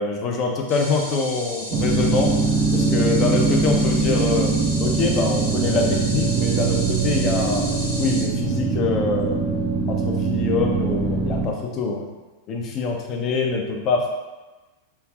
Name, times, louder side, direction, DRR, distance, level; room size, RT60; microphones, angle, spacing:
voice 1, 0.0-2.3 2.7-4.5 4.8-7.7 8.0-9.4 9.9-12.1 12.5-14.1, left 4 dB, 35° left, 1 dB, 0.5 m, -24 dB
sound 1, 0.7-8.2, right 1 dB, 85° right, 0.9 m, -34 dB
sound 2, 1.7-11.5, right 4 dB, 30° right, 0.4 m, -22 dB
3.2 x 2.5 x 2.4 m, 1.2 s
figure-of-eight pair, 90°, 0 cm